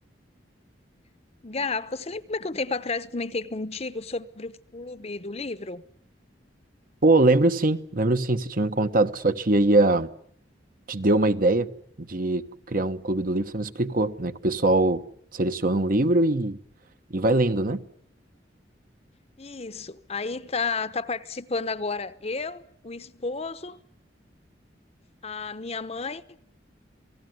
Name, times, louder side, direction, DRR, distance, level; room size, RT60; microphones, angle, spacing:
voice 1, 1.4-5.8 19.4-23.8 25.2-26.2, left 4 dB, 35° left, 1.0 m, -32 dB
voice 2, 7.0-10.1 10.9-11.7 12.0-15.0 15.3-16.6 17.1-17.8, right 2 dB, 50° right, 1.2 m, -22 dB
28.0 x 18.5 x 9.4 m
head